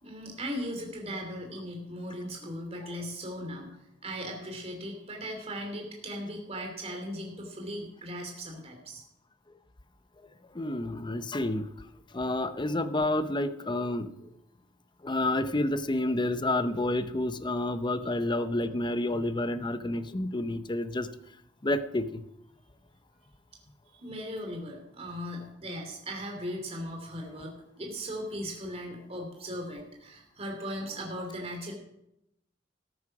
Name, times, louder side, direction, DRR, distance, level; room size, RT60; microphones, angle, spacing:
voice 1, 0.0-3.7 4.0-9.0 23.9-31.7, equal, 35° right, 1 dB, 3.1 m, -38 dB
voice 2, 10.5-11.9 12.1-14.1 15.0-21.1 21.6-22.2, left 1 dB, 25° left, 11 dB, 0.7 m, -29 dB
14.0 x 9.7 x 6.0 m, 0.82 s
head